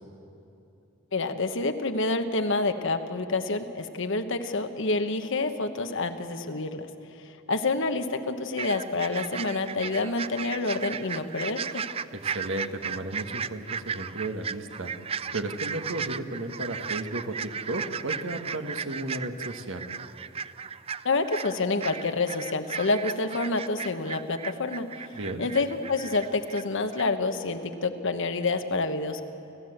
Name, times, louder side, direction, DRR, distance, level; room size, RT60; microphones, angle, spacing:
voice 1, 1.1-6.8 7.5-11.8 21.0-24.9 25.4-29.2, left 3 dB, 65° left, 8 dB, 1.2 m, -28 dB
sound 1, 8.6-26.6 26.9-27.0, right 6 dB, 30° right, 0.4 m, -36 dB
voice 2, 12.2-14.9 15.3-19.9 25.1-25.5, right 2 dB, 65° right, 5 dB, 1.6 m, -34 dB
29.5 x 13.5 x 7.9 m, 2.9 s
head